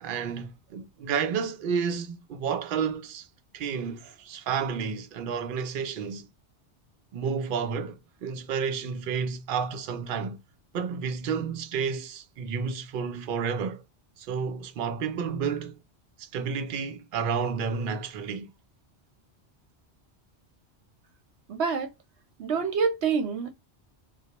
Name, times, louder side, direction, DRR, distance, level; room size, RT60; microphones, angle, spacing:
voice 1, 0.0-3.3 3.5-6.3 7.1-10.4 10.7-13.8 14.2-15.8 16.2-18.5, right 6 dB, 60° right, 0.6 m, -31 dB
voice 2, 21.5-21.9 22.4-23.5, right 5 dB, 80° right, 1.0 m, -26 dB
2.2 x 2.0 x 2.8 m
omnidirectional pair, 1.1 m